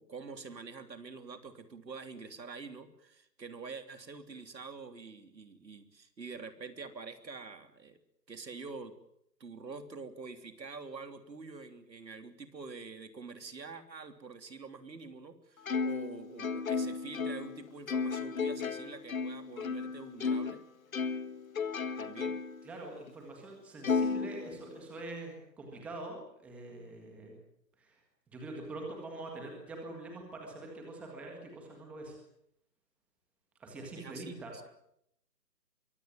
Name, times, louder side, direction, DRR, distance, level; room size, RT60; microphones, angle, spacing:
voice 1, 0.0-8.0 8.3-8.9 9.4-20.6 22.0-22.4 34.0-34.3, right 4 dB, 80° right, 8 dB, 3.4 m, -46 dB
Plucked string instrument, 15.7-20.6 20.9-22.6 23.1-23.2 23.8-25.0, left 5 dB, 55° left, 1.4 m, -34 dB
voice 2, 22.6-27.4 27.8-28.0 28.3-32.2 33.6-34.5, right 2 dB, 5° right, 1 dB, 1.7 m, -44 dB
23.0 x 17.0 x 9.3 m, 0.76 s
hypercardioid pair, 165°, 50 cm